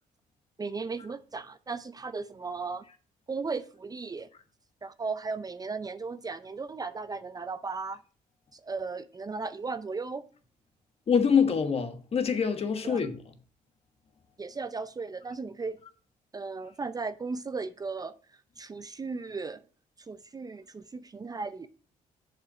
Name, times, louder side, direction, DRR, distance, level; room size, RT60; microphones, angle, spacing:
voice 1, 0.6-2.9 3.3-4.3 4.8-8.0 8.5-10.2 12.8-13.0 14.4-15.8 16.3-18.1 18.6-19.6 20.1-21.7, right 4 dB, 25° right, 0.5 m, -36 dB
voice 2, 11.1-13.3, left 6 dB, 40° left, 1.3 m, -25 dB
6.9 x 5.5 x 4.9 m
cardioid pair, 95°, 15 cm